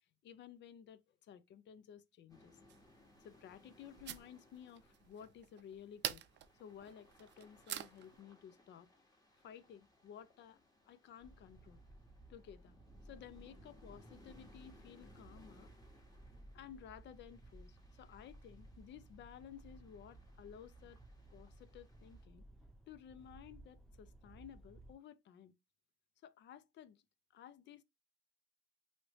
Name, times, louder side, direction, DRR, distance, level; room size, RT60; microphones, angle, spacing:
voice 1, 0.2-2.6 3.2-6.2 6.6-8.9 9.4-10.6 10.9-11.8 12.3-12.8 13.0-15.7 16.5-21.0 21.3-22.4 22.9-25.5 26.2-27.0 27.3-27.8, left 9 dB, 65° left, 0.4 m, -55 dB
sound 1, 2.3-22.2, left 2 dB, 20° left, 1.2 m, -67 dB
sound 2, 2.7-8.2, right 12 dB, 65° right, 0.4 m, -48 dB
sound 3, 11.2-24.9, right 1 dB, ahead, 0.8 m, -59 dB
3.1 x 2.8 x 3.0 m
cardioid pair, 90°, 20 cm